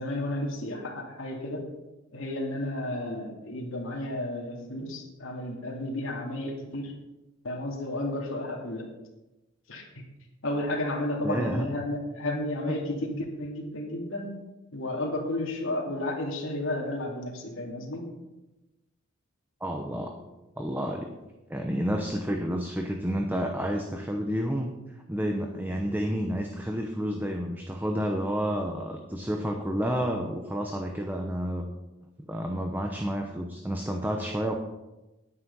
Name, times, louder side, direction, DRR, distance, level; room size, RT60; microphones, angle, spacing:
voice 1, 0.0-1.6 2.1-6.9 7.4-8.9 9.7-10.0 10.4-14.3 14.7-18.1, left 1 dB, 70° left, -1 dB, 2.6 m, -32 dB
voice 2, 11.2-11.7 12.7-12.8 19.6-20.1 20.6-21.1 21.5-24.7 25.1-31.6 32.2-34.6, equal, 10° right, 3 dB, 0.8 m, -30 dB
9.7 x 9.6 x 5.5 m, 1.0 s
head